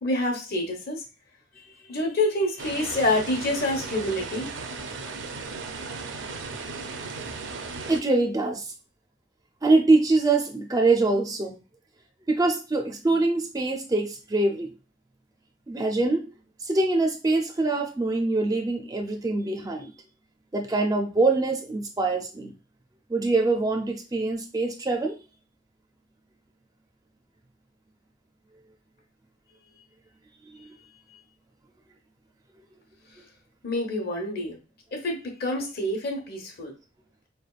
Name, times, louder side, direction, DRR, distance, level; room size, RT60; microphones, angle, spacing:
voice 1, 0.0-1.0 1.5-4.5 33.6-34.6 34.9-36.7, left 1 dB, 55° left, 1.1 m, -27 dB
sound 1, 2.6-8.0, right 4 dB, 75° right, 0.6 m, -36 dB
voice 2, 7.9-8.7 9.6-11.5 12.3-14.7 15.7-16.3 16.6-19.9 20.5-22.5 23.1-25.2 30.6-30.7, right 2 dB, 20° right, 0.4 m, -24 dB
4.5 x 3.3 x 2.3 m
head